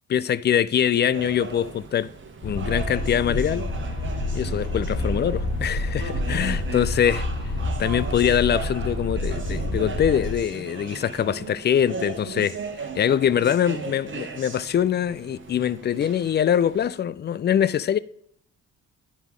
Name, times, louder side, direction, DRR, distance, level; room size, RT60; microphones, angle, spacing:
voice 1, 0.1-2.1 2.4-3.7 4.3-7.3 7.8-12.6 12.9-18.0, left 9 dB, 35° left, 0.4 m, -23 dB
sound 1, 1.1-16.9, right 5 dB, 40° right, 1.1 m, -37 dB
sound 2, 2.4-10.4, left 1 dB, 50° left, 1.8 m, -28 dB
11.0 x 4.6 x 3.7 m
supercardioid pair, 60°, 32 cm